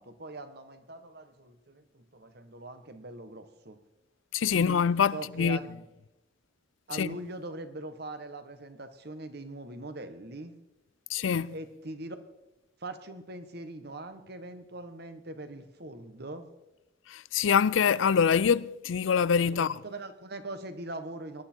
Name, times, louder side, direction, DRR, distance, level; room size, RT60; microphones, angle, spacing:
voice 1, 0.0-3.8 4.5-4.8 5.1-5.8 6.9-10.5 11.5-12.2 12.8-16.5 19.5-21.4, right 2 dB, 55° right, 1.3 m, -41 dB
voice 2, 4.3-5.6 6.9-7.2 11.1-11.5 17.1-19.7, left 7 dB, 75° left, 0.4 m, -25 dB
19.5 x 11.5 x 4.5 m
head